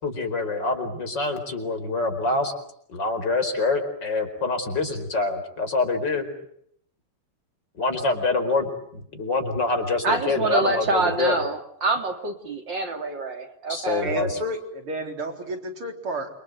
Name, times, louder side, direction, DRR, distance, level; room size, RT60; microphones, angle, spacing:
voice 1, 0.0-2.5 2.9-6.3 7.7-11.4 13.7-14.4, left 3 dB, 50° left, 7 dB, 5.2 m, -25 dB
voice 2, 10.0-14.2, right 3 dB, 55° right, 5 dB, 3.5 m, -26 dB
voice 3, 14.0-16.3, right 1 dB, 75° right, 4 dB, 4.8 m, -31 dB
28.5 x 25.5 x 8.0 m, 0.70 s
omnidirectional pair, 2.4 m